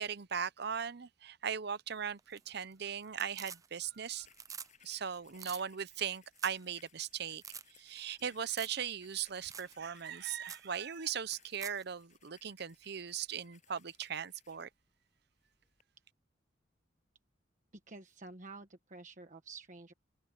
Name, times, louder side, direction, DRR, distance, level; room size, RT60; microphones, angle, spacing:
voice 1, 0.0-4.3 4.8-7.4 7.7-14.7, right 7 dB, 60° right, 0.7 m, -39 dB
sound 1, 2.2-2.7 3.0-4.0 4.2-4.7 5.0-5.1 5.3-5.6 6.1-6.2 6.4-6.6 7.0-7.1 7.4-7.6 8.5-8.8 9.1-9.2 9.5-9.7 10.1-10.2 10.4-10.7 11.3-11.8 14.0-14.1, right 7 dB, 20° right, 0.4 m, -47 dB
sound 2, 3.9-14.7 15.4-15.8, left 8 dB, 40° left, 7.8 m, -66 dB
voice 2, 17.7-19.9, right 3 dB, 45° right, 1.3 m, -50 dB
head